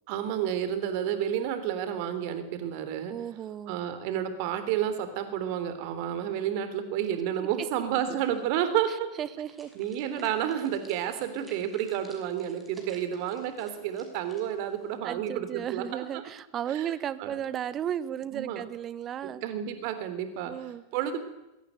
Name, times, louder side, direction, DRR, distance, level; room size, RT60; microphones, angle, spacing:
voice 1, 0.1-3.1 3.7-9.1 9.8-16.2 16.7-16.9 17.2-17.4 18.3-18.6 19.2-20.5 20.9-21.2, right 10 dB, 45° right, 10 dB, 3.5 m, -30 dB
voice 2, 3.1-3.9 7.6-7.7 9.2-9.7 15.0-19.4 20.5-20.8, right 10 dB, 30° right, 17 dB, 1.3 m, -34 dB
sound 1, 9.4-15.0, right 2 dB, 10° right, 6.1 m, -54 dB
22.5 x 16.5 x 9.3 m, 0.98 s
figure-of-eight pair, 90°, 0 cm